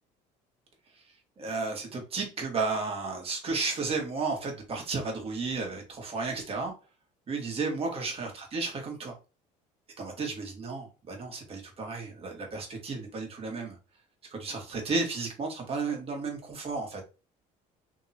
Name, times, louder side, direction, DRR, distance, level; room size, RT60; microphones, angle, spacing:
voice 1, 1.4-6.7 7.3-9.1 10.0-13.7 14.3-17.0, right 4 dB, 35° right, 1.9 m, -33 dB
3.5 x 3.0 x 4.3 m
cardioid pair, 105°, 16 cm